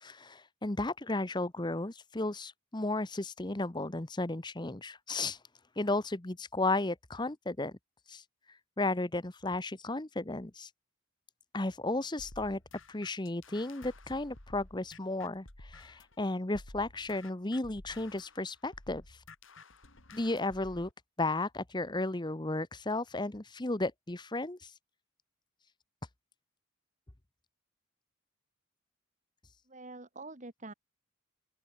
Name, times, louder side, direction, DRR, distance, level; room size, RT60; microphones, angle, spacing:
voice 1, 0.0-5.4 5.8-7.8 8.1-8.2 8.8-10.7 11.5-12.6 12.9-19.0 20.1-20.9 21.2-24.7, left 2 dB, 20° left, 1.0 m, -34 dB
sound 1, 12.2-16.2 16.5-20.9, left 2 dB, 65° left, 3.7 m, -52 dB
voice 2, 29.7-30.7, right 2 dB, 35° right, 2.0 m, -46 dB
open air
head